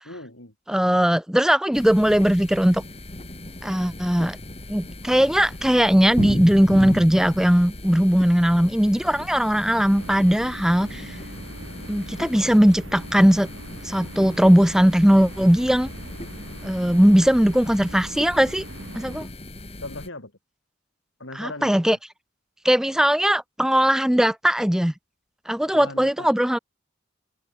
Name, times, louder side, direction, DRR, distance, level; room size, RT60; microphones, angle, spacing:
voice 1, 0.0-0.5 10.4-10.5 10.9-11.0 19.8-20.3 21.2-22.0 25.6-26.3, left 2 dB, 75° left, 6.3 m, -38 dB
voice 2, 0.7-2.8 3.6-4.4 4.7-11.2 11.9-13.5 13.8-15.9 16.6-18.7 18.9-19.3 21.3-22.0 22.6-24.9 25.5-26.6, equal, 5° right, 0.4 m, -19 dB
sound 1, 1.7-20.1, left 1 dB, 30° left, 2.9 m, -36 dB
sound 2, 9.9-19.2, right 1 dB, 85° right, 3.7 m, -42 dB
open air
head